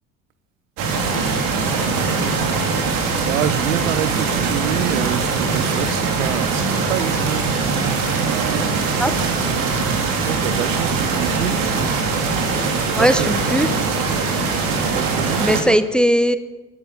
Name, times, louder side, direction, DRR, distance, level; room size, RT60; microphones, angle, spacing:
sound 1, 0.8-15.6, right 4 dB, 55° right, 3.3 m, -21 dB
voice 1, 3.2-9.8 10.2-11.6 12.5-13.3 14.9-15.8, right 11 dB, 70° right, 15 dB, 1.0 m, -28 dB
voice 2, 9.0-9.4 13.0-13.7 14.7-15.0 15.4-16.4, equal, ahead, 13 dB, 0.8 m, -19 dB
16.0 x 12.0 x 7.2 m, 1.2 s
figure-of-eight pair, 65°, 41 cm